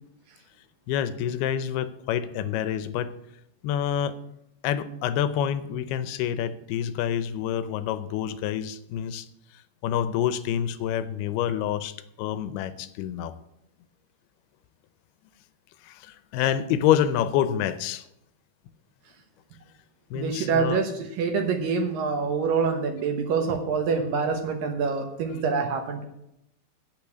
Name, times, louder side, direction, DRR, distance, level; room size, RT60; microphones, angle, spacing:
voice 1, 0.9-3.1 3.6-4.1 4.6-9.3 9.8-13.3 15.8-18.0 20.1-20.8, left 10 dB, 80° left, 13 dB, 2.6 m, -27 dB
voice 2, 20.1-26.0, right 5 dB, 70° right, 5 dB, 2.5 m, -26 dB
9.0 x 8.4 x 8.2 m, 0.81 s
omnidirectional pair, 4.7 m